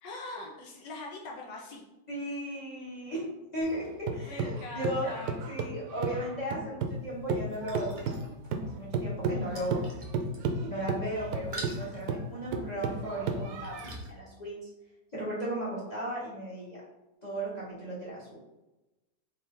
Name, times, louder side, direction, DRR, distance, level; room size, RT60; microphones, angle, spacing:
voice 1, 0.0-1.8 4.2-5.3, left 2 dB, 80° left, -1 dB, 1.4 m, -42 dB
voice 2, 2.1-3.2 3.5-5.1 5.4-7.9 8.7-9.9 10.6-13.8 14.1-14.6 15.1-16.8 17.2-18.4, right 1 dB, 25° left, -6 dB, 1.2 m, -36 dB
sound 1, 3.6-7.0 7.3-14.0, right 4 dB, 75° right, 1.1 m, -33 dB
sound 2, 6.8-14.1, right 1 dB, 30° right, 0.7 m, -46 dB
4.4 x 3.2 x 3.7 m, 1.0 s
omnidirectional pair, 1.8 m